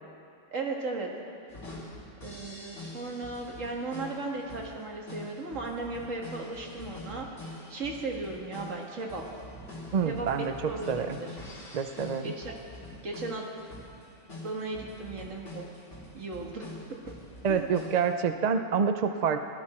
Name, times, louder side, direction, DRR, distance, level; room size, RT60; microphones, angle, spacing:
voice 1, 0.5-1.1 2.2-7.3 7.7-9.2 10.1-11.4 12.2-12.6 13.0-13.5 14.4-15.7 16.1-16.7 17.5-17.7, right 3 dB, 80° right, -1 dB, 2.0 m, -36 dB
sound 1, 1.5-18.1, left 2 dB, 65° left, 3.4 m, -45 dB
voice 2, 9.9-11.2 11.7-12.3 17.4-19.4, right 6 dB, 45° right, 8 dB, 0.5 m, -27 dB
17.5 x 12.5 x 4.3 m, 2.4 s
omnidirectional pair, 1.3 m